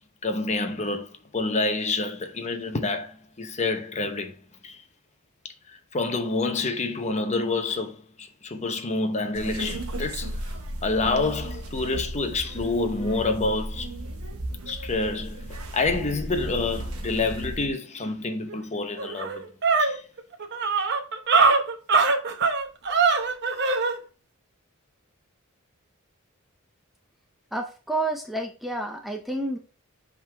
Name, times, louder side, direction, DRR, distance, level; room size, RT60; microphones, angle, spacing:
voice 1, 0.2-4.4 4.6-4.8 5.4-5.5 5.9-10.3 10.8-13.9 14.7-19.4 19.8-20.0, left 3 dB, 30° left, 0.8 m, -28 dB
sound 1, 9.3-17.7, right 1 dB, 85° right, 1.1 m, -35 dB
sound 2, 18.5-18.6 19.0-24.0, right 4 dB, 50° right, 0.8 m, -22 dB
voice 2, 27.5-29.6, right 2 dB, ahead, 0.5 m, -29 dB
7.6 x 3.8 x 3.4 m
head